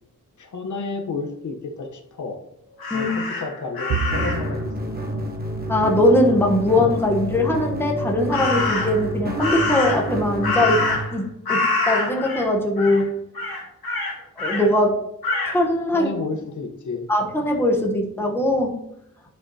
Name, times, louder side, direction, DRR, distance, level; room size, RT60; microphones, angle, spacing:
voice 1, 0.4-2.4 2.9-5.3 15.9-17.1, left 4 dB, 55° left, 4 dB, 0.9 m, -31 dB
Crow, 2.8-4.5 8.3-9.0 9.4-11.2 11.5-12.5 12.8-13.0 13.3-14.7 15.2-15.6, left 3 dB, 85° left, 2.1 m, -25 dB
Bowed string instrument, 3.9-7.4, right 5 dB, 65° right, 0.6 m, -32 dB
sound 1, 4.1-11.0, equal, 25° right, 0.9 m, -29 dB
voice 2, 5.7-10.8 11.1-13.1 14.4-15.0 15.5-16.1 17.1-18.8, left 1 dB, 5° left, 0 dB, 0.9 m, -21 dB
9.9 x 5.7 x 2.7 m, 0.79 s
wide cardioid pair, 165°, 35 cm